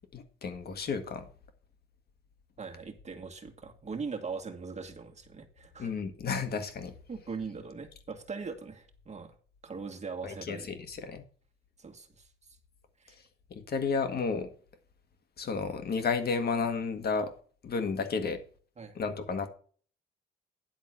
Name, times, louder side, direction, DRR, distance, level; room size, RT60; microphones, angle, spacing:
voice 1, 0.1-1.3 5.8-6.9 10.2-11.2 13.5-14.5 15.4-17.3 17.6-18.4 19.0-19.5, left 5 dB, 50° left, 1.8 m, -32 dB
voice 2, 2.6-5.9 7.1-9.4 9.6-10.7 11.8-12.3 13.0-13.2 18.8-19.0, right 5 dB, 35° right, 1.7 m, -40 dB
10.5 x 4.1 x 7.3 m
cardioid pair, 90°, 20 cm